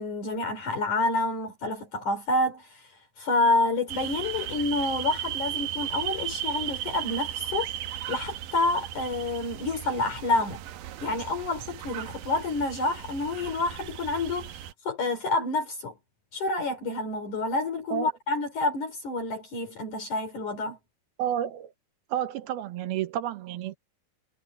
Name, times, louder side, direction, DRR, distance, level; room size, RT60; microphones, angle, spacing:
voice 1, 0.0-2.8 3.2-7.7 8.1-10.6 11.0-14.5 14.8-15.9 16.3-20.8, left 2 dB, 55° left, 4.7 m, -28 dB
sound 1, 3.9-14.7, right 11 dB, 75° right, 2.5 m, -36 dB
voice 2, 21.2-21.7 22.1-23.8, right 11 dB, 90° right, 3.1 m, -30 dB
omnidirectional pair, 4.2 m